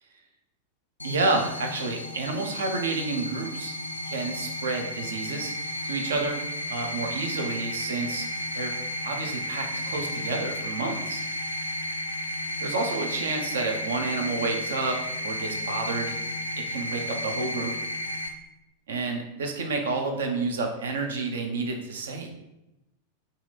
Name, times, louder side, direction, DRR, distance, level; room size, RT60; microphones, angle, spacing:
sound 1, 1.0-18.3, left 1 dB, 85° left, 0.3 m, -33 dB
voice 1, 1.0-3.7 4.1-5.5 5.8-6.4 6.7-8.3 8.5-8.7 9.0-11.2 12.6-15.0 15.2-16.1 16.5-17.7 18.9-22.3, right 3 dB, 65° right, 3 dB, 0.5 m, -30 dB
2.9 x 2.5 x 3.9 m, 0.93 s
figure-of-eight pair, 90°, 0 cm